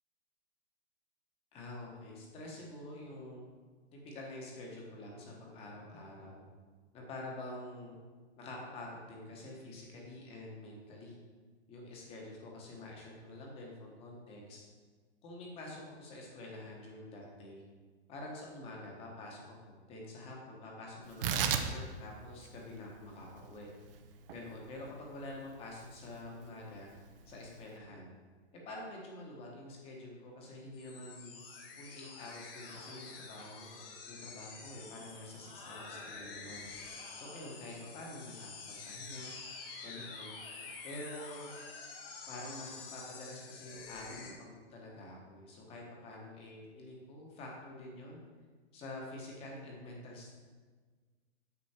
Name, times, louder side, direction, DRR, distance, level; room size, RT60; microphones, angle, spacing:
voice 1, 1.5-3.4 3.9-6.4 6.9-7.9 8.4-11.2 11.7-14.6 15.2-17.6 18.1-19.6 19.9-23.7 24.3-26.9 27.3-28.1 28.5-31.3 31.7-36.7 37.1-38.5 38.9-39.3 39.8-40.4 40.8-41.5 42.3-48.2 48.7-50.3, left 1 dB, 15° left, -1 dB, 1.2 m, -47 dB
Tearing, 21.0-27.8, right 7 dB, 55° right, 0.7 m, -39 dB
sound 1, 30.7-44.3, left 4 dB, 55° left, 1.5 m, -48 dB
8.3 x 6.2 x 4.4 m, 1.5 s
hypercardioid pair, 165°, 34 cm